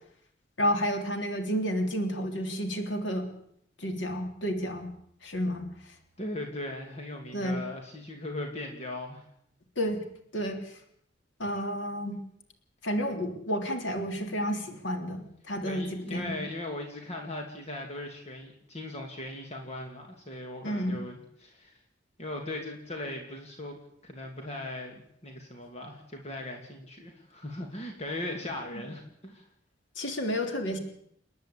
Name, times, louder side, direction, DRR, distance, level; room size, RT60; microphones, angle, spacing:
voice 1, 0.6-3.3 3.8-4.9 5.2-5.9 7.3-7.6 9.8-10.0 10.3-10.8 11.4-12.2 12.8-16.4 20.6-21.0 28.7-28.8 29.9-30.8, equal, 90° left, 5 dB, 3.4 m, -31 dB
voice 2, 6.2-9.3 15.6-21.8 22.2-23.8 24.0-29.5, left 1 dB, 35° left, 2 dB, 2.7 m, -38 dB
29.5 x 10.5 x 8.5 m, 0.71 s
head